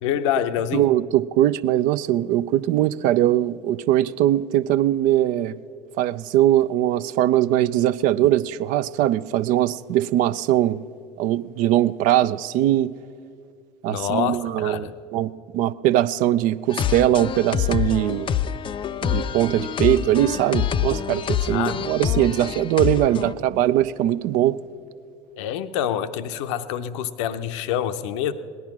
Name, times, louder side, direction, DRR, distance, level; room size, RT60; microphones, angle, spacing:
voice 1, 0.0-0.9 13.9-14.9 21.5-21.8 25.4-28.3, left 10 dB, 70° left, 10 dB, 0.7 m, -26 dB
voice 2, 0.7-5.5 6.0-10.8 11.2-12.9 13.8-18.4 19.0-24.6, right 13 dB, 60° right, 16 dB, 0.5 m, -21 dB
sound 1, 16.7-23.3, left 9 dB, 35° left, 0.5 m, -26 dB
17.5 x 11.0 x 5.9 m, 2.3 s
hypercardioid pair, 75°, 16 cm